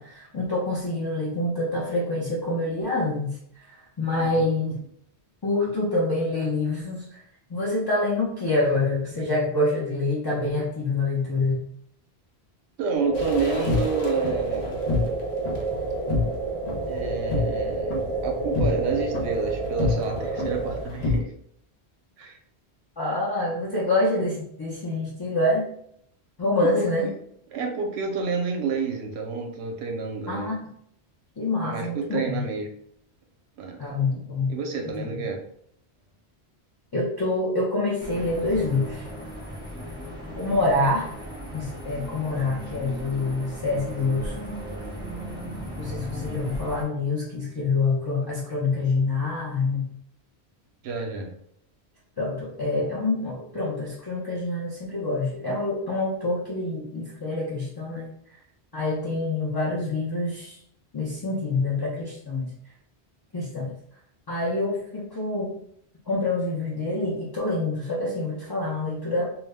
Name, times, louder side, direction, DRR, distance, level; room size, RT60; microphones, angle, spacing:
voice 1, 0.0-3.4 3.7-4.8 5.4-7.2 7.5-11.6 23.0-25.7 26.4-27.1 30.3-30.6 31.4-32.4 33.8-34.6 35.0-35.3 36.9-39.1 40.3-41.1 41.5-44.4 45.8-49.9 52.2-58.1 58.7-60.6 60.9-62.5 63.3-63.7 64.3-65.6 66.1-69.3, left 2 dB, 40° left, -6 dB, 0.3 m, -26 dB
voice 2, 4.2-4.6 12.8-14.8 16.9-21.3 22.2-22.4 26.6-26.9 27.5-30.5 31.6-32.7 33.6-33.8 34.5-35.4 50.8-51.3, right 5 dB, 80° right, 3 dB, 0.8 m, -29 dB
sound 1, 12.9-20.8, right 3 dB, 45° right, 0.6 m, -30 dB
sound 2, 13.1-21.2, left 3 dB, 80° left, 0.9 m, -29 dB
sound 3, 38.0-46.8, equal, 5° right, 0.6 m, -37 dB
2.3 x 2.0 x 3.3 m, 0.69 s
omnidirectional pair, 1.1 m